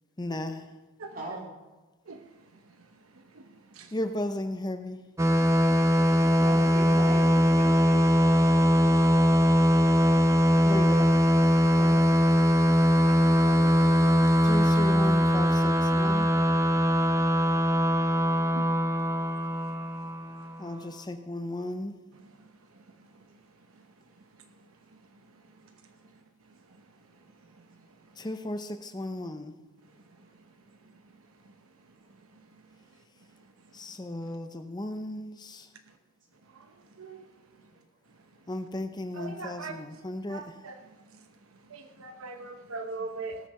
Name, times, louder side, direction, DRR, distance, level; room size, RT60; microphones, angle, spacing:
voice 1, 0.2-0.8 3.9-5.0 10.6-11.2 14.4-16.3 20.6-22.0 28.2-29.6 33.7-35.7 38.5-40.7, left 1 dB, 20° left, 7 dB, 0.6 m, -35 dB
voice 2, 1.1-1.5 6.4-8.7 11.8-11.9 37.7-37.8, right 1 dB, 40° right, -1 dB, 3.2 m, -40 dB
sound 1, 5.2-20.6, equal, 15° right, 0.8 m, -22 dB
voice 3, 13.0-14.2 16.9-17.0 18.5-18.7 37.0-37.2 39.2-39.7 40.3-40.8 41.7-43.4, right 3 dB, 80° right, 6 dB, 0.9 m, -40 dB
18.0 x 6.6 x 6.5 m, 1.2 s
head